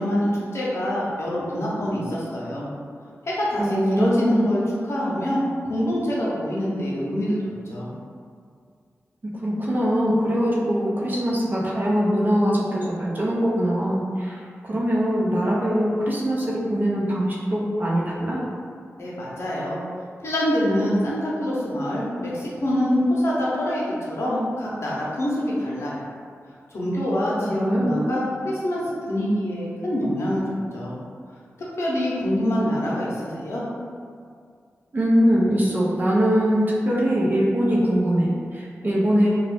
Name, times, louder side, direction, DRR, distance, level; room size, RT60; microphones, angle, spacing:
voice 1, 0.0-2.7 3.3-3.7 4.0-7.4 7.7-7.9 19.0-19.8 20.2-26.1 26.7-30.4 30.7-31.0 31.8-33.6, equal, 65° left, -6 dB, 0.7 m, -25 dB
voice 2, 3.6-4.5 9.2-18.4 27.4-28.0 34.9-39.3, equal, 40° right, -5 dB, 0.5 m, -22 dB
2.4 x 2.3 x 3.3 m, 2.1 s
wide cardioid pair, 140°, 5 cm